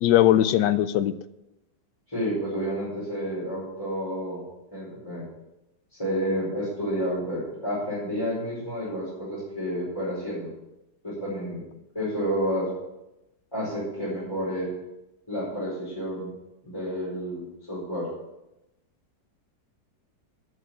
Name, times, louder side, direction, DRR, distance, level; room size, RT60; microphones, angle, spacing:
voice 1, 0.0-1.1, left 12 dB, 85° left, 13 dB, 1.3 m, -20 dB
voice 2, 2.1-4.4 4.7-5.2 5.9-10.5 11.0-11.6 11.9-12.7 13.5-14.7 15.3-16.3 16.6-18.1, equal, 15° left, -9 dB, 4.8 m, -30 dB
9.7 x 8.4 x 7.3 m, 0.94 s
omnidirectional pair, 1.9 m